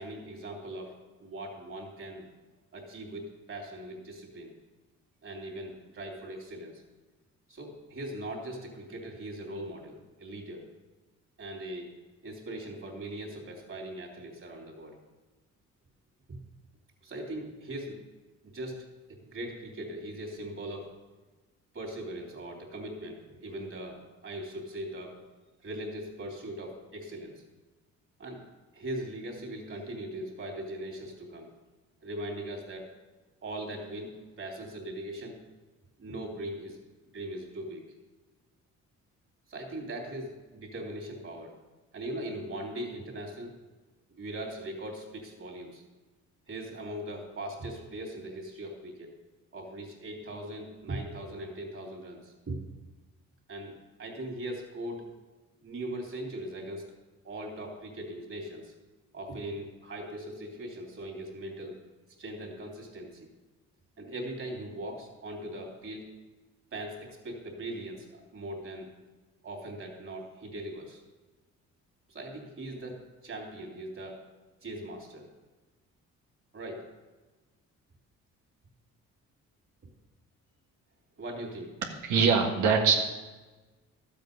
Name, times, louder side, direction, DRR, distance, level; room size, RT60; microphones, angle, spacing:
voice 1, 0.0-2.3 2.7-4.5 5.2-6.8 7.5-10.7 11.4-11.9 12.2-14.9 16.3-16.4 17.0-18.0 18.4-20.9 21.7-25.2 25.6-27.4 28.2-28.4 28.7-31.5 32.0-32.9 33.4-35.4 36.0-36.8 37.1-37.8 39.5-41.5 41.9-43.5 44.2-45.8 46.5-49.1 49.5-52.6 53.5-55.1 55.6-56.9 57.2-58.7 59.1-61.8 62.2-63.3 64.0-66.0 66.7-68.9 69.4-71.0 72.1-74.2 74.6-75.3 76.5-76.9 81.2-81.7, right 1 dB, 45° right, 0 dB, 3.3 m, -40 dB
voice 2, 82.0-83.0, right 5 dB, 80° right, 1 dB, 1.6 m, -22 dB
12.5 x 7.9 x 5.3 m, 1.2 s
cardioid pair, 90°, 30 cm